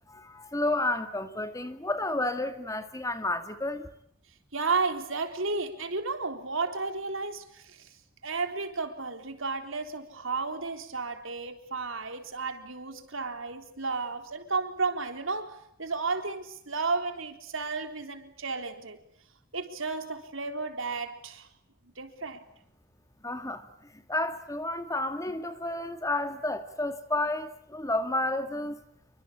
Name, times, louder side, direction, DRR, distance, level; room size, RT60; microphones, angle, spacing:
voice 1, 0.1-3.9 23.2-28.8, left 2 dB, 15° left, 1.9 m, -31 dB
voice 2, 4.5-7.9 8.2-19.0 19.5-21.5 22.0-22.4, right 4 dB, 65° right, 3.8 m, -33 dB
28.5 x 24.5 x 8.6 m
head